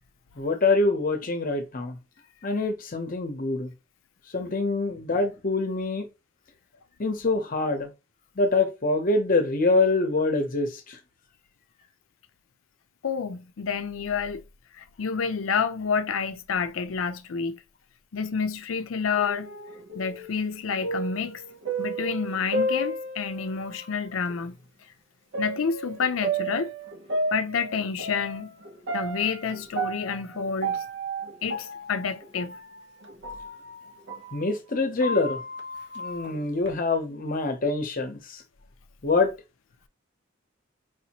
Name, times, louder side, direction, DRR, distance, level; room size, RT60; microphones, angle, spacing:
voice 1, 0.4-2.0 2.4-3.7 4.3-6.1 7.0-7.9 8.4-11.0 34.3-35.4 36.0-38.4 39.0-39.3, left 3 dB, 45° left, 0.8 m, -25 dB
voice 2, 13.0-14.4 14.8-17.6 18.1-19.5 19.9-21.4 21.8-24.6 25.4-26.7 27.3-28.5 28.9-30.8 31.4-32.6, left 6 dB, 90° left, 0.5 m, -29 dB
sound 1, 19.2-23.8 24.3-24.4 25.3-34.4 34.8-36.7, right 2 dB, 60° right, 0.9 m, -33 dB
4.9 x 2.7 x 2.9 m
head